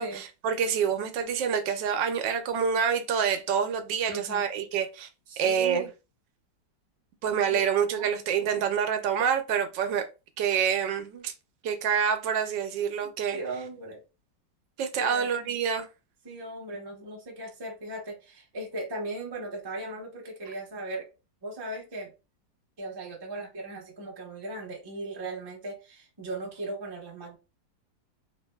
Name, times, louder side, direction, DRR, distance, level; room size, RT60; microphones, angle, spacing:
voice 1, 0.0-5.1 5.4-5.9 7.2-10.1 10.4-11.3 11.6-13.4 14.8-15.9, right 7 dB, 75° right, 1.2 m, -27 dB
voice 2, 4.1-4.4 5.3-5.9 7.5-7.6 7.9-8.1 13.0-14.0 15.0-15.3 16.2-21.1 21.4-22.1 22.8-27.4, right 2 dB, 40° right, 0.3 m, -38 dB
3.2 x 2.6 x 2.2 m
omnidirectional pair, 2.0 m